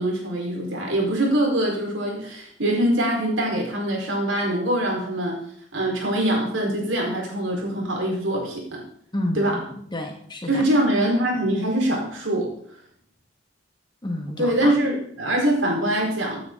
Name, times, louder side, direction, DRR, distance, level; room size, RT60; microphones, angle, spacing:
voice 1, 0.0-5.4 5.7-8.8 9.3-9.5 10.5-12.5 14.4-16.4, right 1 dB, 90° right, 0 dB, 4.7 m, -23 dB
voice 2, 9.1-10.6 14.0-14.7, left 1 dB, 25° left, 3 dB, 1.8 m, -30 dB
16.5 x 9.4 x 4.0 m, 0.63 s
head